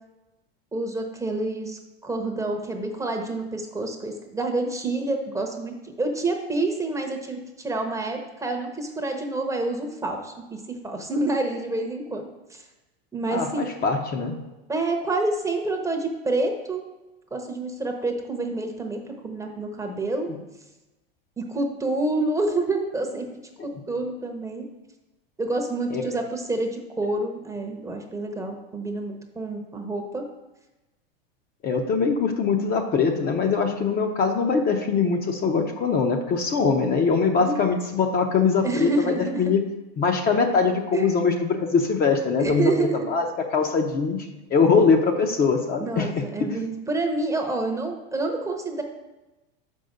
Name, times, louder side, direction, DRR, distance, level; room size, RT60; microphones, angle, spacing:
voice 1, 0.7-12.6 13.1-13.7 14.7-16.8 17.3-20.3 21.4-23.3 23.9-24.7 25.4-30.2 37.4-37.7 38.6-39.4 40.9-41.1 42.4-43.0 45.8-48.8, right 2 dB, 10° right, 3 dB, 0.8 m, -28 dB
voice 2, 13.3-14.4 23.6-23.7 25.9-26.2 31.6-39.6 40.0-44.2 44.5-46.6, left 5 dB, 30° left, 3 dB, 0.8 m, -22 dB
5.4 x 5.4 x 6.5 m, 1.0 s
supercardioid pair, 125°, 30 cm